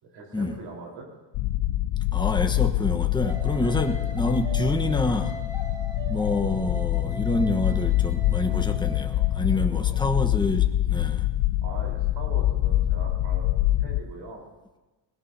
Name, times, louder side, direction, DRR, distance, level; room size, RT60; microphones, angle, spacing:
voice 1, 0.0-1.1 3.6-4.0 9.6-10.1 11.6-14.4, right 3 dB, 80° right, -1 dB, 4.3 m, -42 dB
sound 1, 1.3-14.0, left 14 dB, 70° left, 0.5 m, -25 dB
voice 2, 2.1-5.3 6.1-11.3, left 2 dB, 10° left, 4 dB, 1.1 m, -27 dB
sound 2, 3.2-9.6, right 3 dB, 10° right, 2.0 m, -41 dB
21.0 x 17.5 x 2.8 m, 1.2 s
cardioid pair, 100°, 43 cm